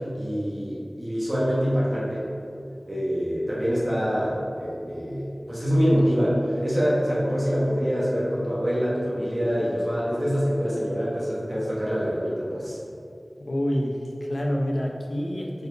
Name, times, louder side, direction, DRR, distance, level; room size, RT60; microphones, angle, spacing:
voice 1, 0.1-2.3 2.9-12.8, equal, 25° right, -8 dB, 1.4 m, -25 dB
voice 2, 13.4-15.7, equal, 60° left, -1 dB, 0.8 m, -27 dB
4.8 x 4.7 x 4.7 m, 2.5 s
wide cardioid pair, 45°, 0 cm